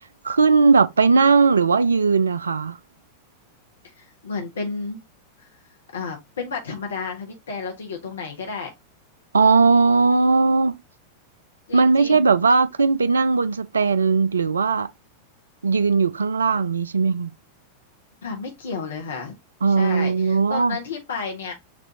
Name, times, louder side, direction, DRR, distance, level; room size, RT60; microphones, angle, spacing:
voice 1, 0.2-2.8 9.3-10.7 11.7-14.9 15.6-17.3 19.6-20.8, right 4 dB, 75° right, 0.4 m, -18 dB
voice 2, 4.0-5.0 5.4-5.5 5.9-8.7 11.7-12.2 18.2-19.3 19.7-21.5, left 4 dB, 70° left, 0.9 m, -32 dB
5.9 x 2.5 x 2.8 m
figure-of-eight pair, 90°, 0 cm